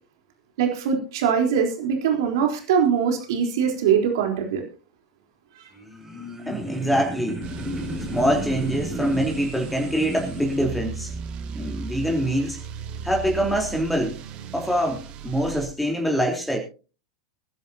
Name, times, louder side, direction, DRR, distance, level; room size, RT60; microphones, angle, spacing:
voice 1, 0.6-4.6, right 7 dB, 65° right, 3 dB, 3.8 m, -22 dB
sound 1, 5.7-10.6, equal, 15° right, 5.2 m, -33 dB
voice 2, 6.5-7.4 8.1-11.1 11.5-12.6 13.0-14.2 14.5-16.6, equal, 5° left, 1 dB, 3.7 m, -24 dB
sound 2, 7.4-15.7, right 5 dB, 45° right, 2.2 m, -36 dB
24.0 x 11.0 x 2.8 m, 0.34 s
hypercardioid pair, 90°, 3 cm